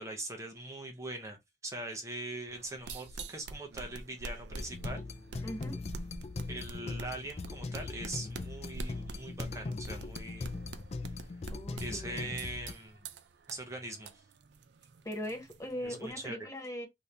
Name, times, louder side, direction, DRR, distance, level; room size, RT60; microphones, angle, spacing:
voice 1, 0.0-5.0 6.5-10.6 11.8-13.0 13.5-14.2 15.8-16.4, right 1 dB, 15° right, 0.6 m, -42 dB
sound 1, 2.5-16.3, right 3 dB, 80° right, 0.4 m, -47 dB
sound 2, 4.5-12.7, left 3 dB, 35° left, 0.3 m, -40 dB
voice 2, 5.4-5.8 11.5-12.2 15.0-16.9, equal, 20° left, 0.7 m, -40 dB
2.8 x 2.6 x 3.2 m
head